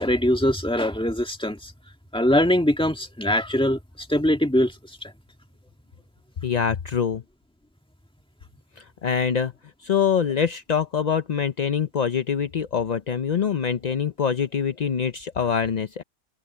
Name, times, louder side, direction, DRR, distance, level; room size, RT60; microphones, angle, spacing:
voice 1, 0.0-1.7 2.1-3.8 4.1-4.7, left 1 dB, 5° left, 1.9 m, -22 dB
voice 2, 6.4-7.2 8.8-9.5 9.8-16.0, left 7 dB, 50° left, 0.5 m, -24 dB
open air
omnidirectional pair, 1.5 m